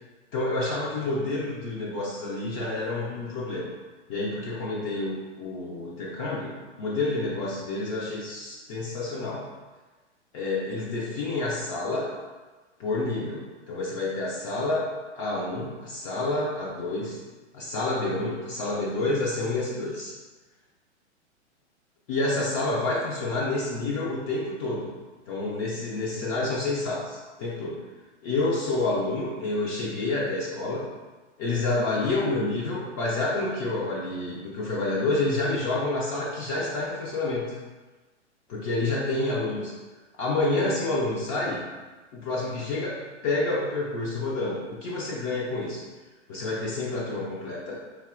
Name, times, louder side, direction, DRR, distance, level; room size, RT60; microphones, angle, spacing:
voice 1, 0.3-3.7 4.1-6.5 6.8-9.5 10.3-12.1 12.8-17.2 17.5-20.1 22.1-24.9 25.3-27.8 28.2-30.8 31.4-37.5 38.5-39.7 40.2-41.6 42.1-45.8 46.3-47.8, left 2 dB, 30° left, -5 dB, 0.5 m, -28 dB
3.4 x 2.6 x 2.4 m, 1.3 s
figure-of-eight pair, 110°, 36 cm